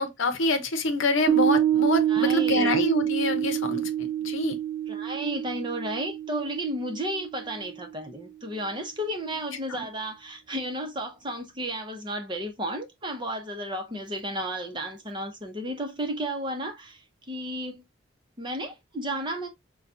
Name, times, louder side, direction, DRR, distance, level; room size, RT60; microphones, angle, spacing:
voice 1, 0.0-4.6 9.7-9.8, left 2 dB, 70° left, 0.8 m, -26 dB
Piano, 1.3-8.0, right 11 dB, 55° right, 0.6 m, -27 dB
voice 2, 2.1-2.7 4.9-17.0 17.3-17.8 18.4-19.5, right 1 dB, 20° right, 0.8 m, -33 dB
5.7 x 2.3 x 2.6 m
head